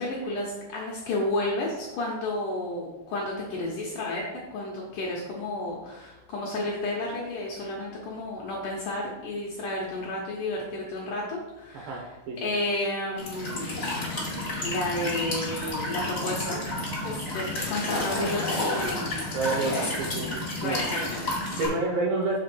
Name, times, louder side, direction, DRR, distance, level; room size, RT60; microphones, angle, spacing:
voice 1, 0.0-4.2 4.5-12.1 12.4-14.0 14.6-16.6 17.0-19.3 20.6-21.7, left 2 dB, 75° left, -3 dB, 2.0 m, -32 dB
voice 2, 11.7-12.4 19.3-20.3 20.6-20.8 21.6-22.4, right 3 dB, 75° right, 0 dB, 2.2 m, -29 dB
Walk footsteps / Chirp tweet / Stream, 13.2-21.7, left 1 dB, 50° left, 0.9 m, -31 dB
6.7 x 3.6 x 5.9 m, 1.0 s
omnidirectional pair, 4.8 m